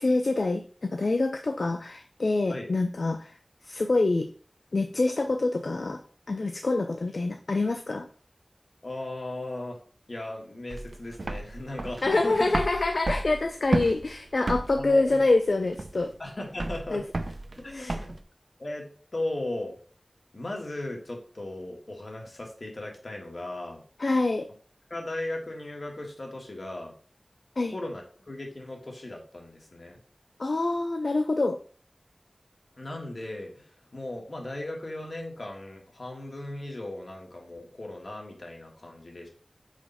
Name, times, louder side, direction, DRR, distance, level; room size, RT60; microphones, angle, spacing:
voice 1, 0.0-3.4 3.6-4.3 4.7-8.1 12.0-16.1 16.9-17.0 17.7-18.0 24.0-24.5 27.6-27.7 30.4-31.6, left 2 dB, 90° left, 6 dB, 0.5 m, -26 dB
voice 2, 8.8-9.8 10.1-12.5 14.8-15.2 16.2-17.0 17.6-18.2 18.6-19.8 20.3-23.8 24.9-26.9 27.7-30.0 32.8-39.3, left 1 dB, 70° left, 0 dB, 1.5 m, -37 dB
sound 1, 10.7-18.2, right 2 dB, 75° right, 0.5 m, -33 dB
4.9 x 4.2 x 5.5 m, 0.43 s
wide cardioid pair, 60°, 0 cm